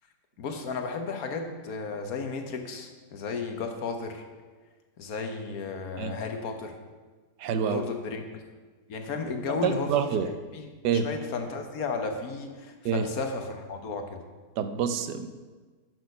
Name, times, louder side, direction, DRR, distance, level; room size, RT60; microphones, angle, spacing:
voice 1, 0.4-4.2 5.0-6.8 7.6-8.4 8.9-14.2, left 4 dB, 65° left, 5 dB, 1.4 m, -34 dB
voice 2, 7.4-7.8 9.6-10.3 10.8-11.1 12.8-13.0 14.6-15.3, right 7 dB, 90° right, 10 dB, 1.3 m, -27 dB
11.0 x 6.3 x 5.4 m, 1.4 s
omnidirectional pair, 1.8 m